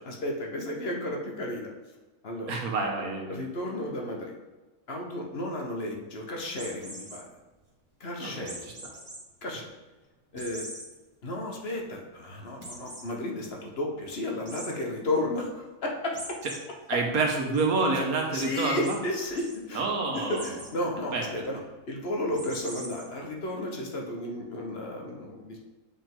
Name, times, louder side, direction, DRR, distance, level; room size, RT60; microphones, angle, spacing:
voice 1, 0.0-1.7 2.2-2.5 3.3-4.3 4.9-7.3 8.0-8.7 9.4-9.7 10.3-10.7 11.2-16.4 16.9-17.0 17.9-18.1 18.3-19.8 20.1-21.6 21.9-25.6, left 1 dB, 45° left, 0 dB, 1.3 m, -33 dB
voice 2, 2.5-3.3 8.2-8.7 16.9-19.0 19.7-20.5 21.1-21.3, right 3 dB, 75° right, 1 dB, 1.7 m, -28 dB
sound 1, 6.6-7.2 8.4-9.2 9.6-9.7 10.4-10.9 11.3-11.4 11.7-11.8 12.6-13.0 14.4-14.7 16.1-16.6 17.0-17.6 18.3-18.5 18.8-18.9 19.2-19.5 20.3-20.7 22.3-23.0, right 1 dB, 35° right, 2.1 m, -42 dB
8.2 x 5.0 x 3.9 m, 1.2 s
omnidirectional pair, 1.5 m